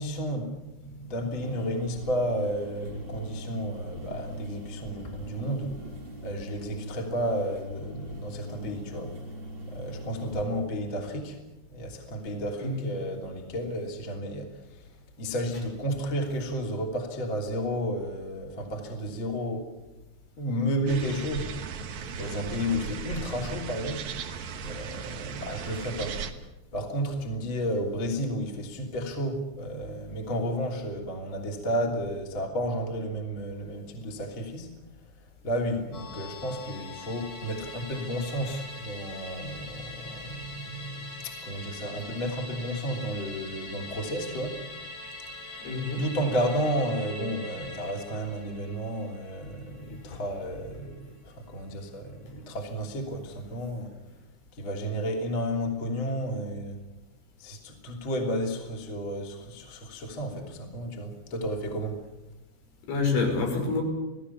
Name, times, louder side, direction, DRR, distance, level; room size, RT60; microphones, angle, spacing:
voice 1, 0.0-5.8 6.2-9.1 9.7-11.4 11.7-14.9 15.2-19.7 20.4-21.7 22.2-24.1 24.6-26.2 26.7-34.7 35.4-44.6 45.5-45.7 46.0-53.9 54.5-56.8 57.4-62.0, equal, 30° left, 1 dB, 3.3 m, -32 dB
sound 1, 1.4-10.4, equal, 45° right, 0.7 m, -40 dB
sound 2, 20.9-26.3, right 6 dB, 70° right, 1.8 m, -37 dB
Musical instrument, 35.9-50.6 50.9-51.0, left 2 dB, 55° left, 8.1 m, -43 dB
voice 2, 45.6-46.0 50.1-50.2 62.9-63.8, left 4 dB, 80° left, 1 dB, 7.9 m, -27 dB
28.5 x 18.0 x 7.1 m, 1.0 s
omnidirectional pair, 5.4 m